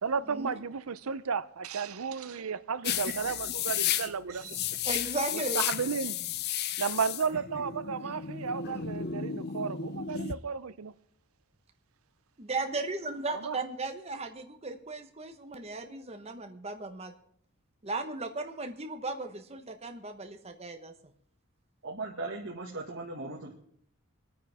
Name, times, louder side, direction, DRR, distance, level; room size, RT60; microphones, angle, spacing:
voice 1, 0.0-4.6 5.3-6.1 6.8-10.9 13.3-13.6, right 6 dB, 80° right, 0.6 m, -33 dB
sound 1, 2.8-10.3, left 10 dB, 50° left, 0.5 m, -33 dB
voice 2, 4.8-5.6 8.0-8.2 12.4-17.1 17.8-21.1, right 3 dB, 30° right, 1.2 m, -36 dB
voice 3, 21.8-23.5, right 2 dB, 60° right, 1.9 m, -38 dB
25.5 x 9.4 x 3.6 m
head